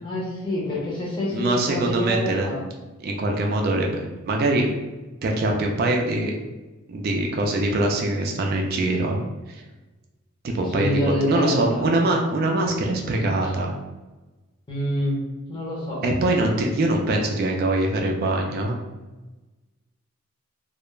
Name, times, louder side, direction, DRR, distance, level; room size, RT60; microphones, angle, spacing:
voice 1, 0.0-2.6 10.7-11.9 14.7-15.2 15.5-16.0, left 1 dB, 25° left, -5 dB, 0.7 m, -26 dB
voice 2, 1.3-2.5 3.0-4.7 5.2-6.3 6.9-9.2 9.5-9.6 10.4-13.7 16.0-18.8, right 2 dB, 45° right, 1 dB, 0.3 m, -23 dB
2.3 x 2.0 x 3.1 m, 1.1 s
head